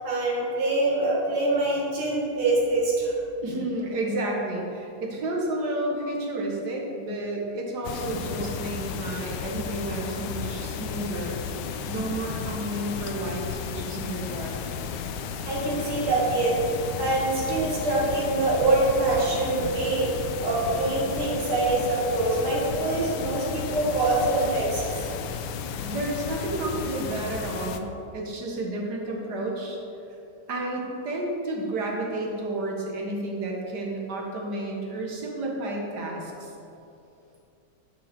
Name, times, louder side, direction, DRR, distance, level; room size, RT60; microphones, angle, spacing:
voice 1, 0.0-3.1 15.5-16.6 17.0-20.1 20.4-24.8, right 2 dB, 90° right, -5 dB, 2.9 m, -24 dB
voice 2, 3.4-11.4 11.9-14.5 25.8-29.8 30.5-36.5, right 1 dB, 55° right, -1 dB, 1.8 m, -31 dB
sound 1, 7.8-27.8, left 6 dB, 75° left, 1.0 m, -34 dB
11.0 x 5.9 x 4.4 m, 2.7 s
omnidirectional pair, 2.3 m